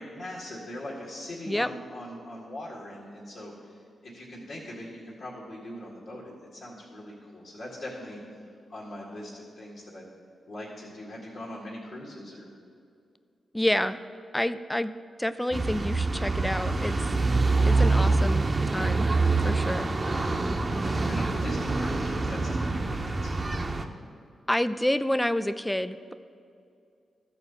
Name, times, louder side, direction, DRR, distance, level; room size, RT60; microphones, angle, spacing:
voice 1, 0.0-8.2 8.7-10.1 10.5-12.5 20.1-20.4 20.7-23.5, left 1 dB, 70° left, -6 dB, 2.1 m, -41 dB
voice 2, 13.5-14.0 14.3-14.9 15.2-17.1 17.7-19.1 19.4-19.9 24.5-26.1, left 1 dB, 10° left, 12 dB, 0.4 m, -28 dB
sound 1, 15.5-23.8, right 3 dB, 40° right, 0.8 m, -25 dB
13.5 x 4.5 x 6.8 m, 2.4 s
supercardioid pair, 40°, 0 cm